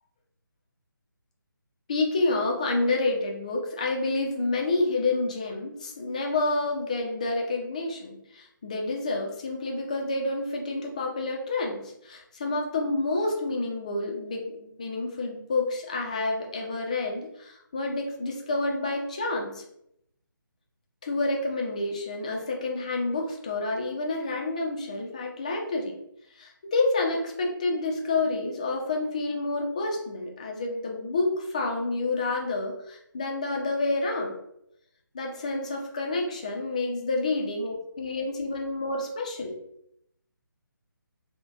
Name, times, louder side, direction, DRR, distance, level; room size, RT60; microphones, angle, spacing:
voice 1, 1.9-19.6 21.0-26.0 26.3-34.4 35.1-39.6, left 2 dB, 20° left, 0 dB, 0.3 m, -29 dB
3.9 x 2.1 x 2.3 m, 0.76 s
figure-of-eight pair, 150°, 12 cm